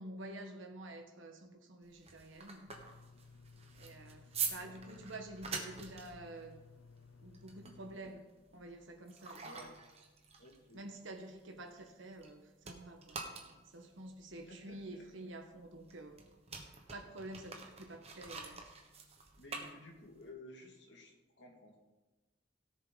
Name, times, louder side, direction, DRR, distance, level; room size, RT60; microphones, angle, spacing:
voice 1, 0.0-2.7 3.8-6.6 7.2-8.3 8.5-9.8 10.7-16.2 16.7-18.6, right 1 dB, 70° right, 1.4 m, -49 dB
sound 1, 1.8-12.3 12.6-20.3, right 5 dB, 30° right, 1.3 m, -46 dB
sound 2, 2.7-8.0, left 4 dB, 90° left, 0.6 m, -58 dB
voice 2, 4.5-5.1 9.4-9.7 10.4-10.8 14.5-15.3 19.4-21.8, left 1 dB, 60° left, 2.2 m, -55 dB
17.0 x 7.0 x 4.0 m
head